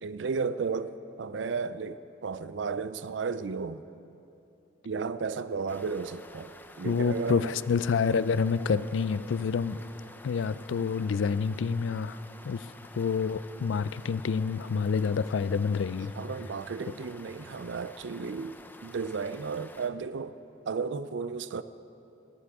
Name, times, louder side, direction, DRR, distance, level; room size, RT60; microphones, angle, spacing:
voice 1, 0.0-3.9 4.8-7.6 16.1-20.4 20.6-21.6, right 5 dB, 75° right, 14 dB, 0.4 m, -34 dB
sound 1, 5.7-19.9, left 2 dB, 10° left, 0.5 m, -50 dB
voice 2, 6.8-9.8 10.2-12.2 12.4-12.7 13.0-16.1, left 5 dB, 80° left, 16 dB, 0.4 m, -28 dB
20.5 x 14.5 x 3.6 m, 2.8 s
head